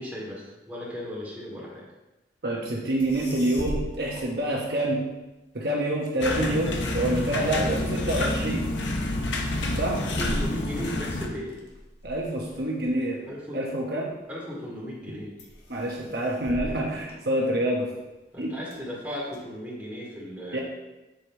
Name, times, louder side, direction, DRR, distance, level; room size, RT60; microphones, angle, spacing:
voice 1, 0.0-1.8 7.3-7.8 9.7-11.6 13.3-13.6 14.3-15.3 18.3-20.6, equal, 10° right, -6 dB, 2.4 m, -36 dB
voice 2, 2.4-5.0 5.5-8.7 9.8-10.0 12.0-13.3 13.5-14.1 15.7-17.9 18.4-18.6 20.5-20.6, right 1 dB, 60° right, -2 dB, 1.1 m, -27 dB
sound 1, 2.7-2.8 3.0-5.1 5.6-14.2 14.7-15.1 15.4-17.9 18.4-19.4, equal, 70° left, 1.6 m, -40 dB
sound 2, 6.2-11.3, left 2 dB, 90° left, 1.0 m, -28 dB
7.8 x 5.0 x 4.5 m, 1.1 s
head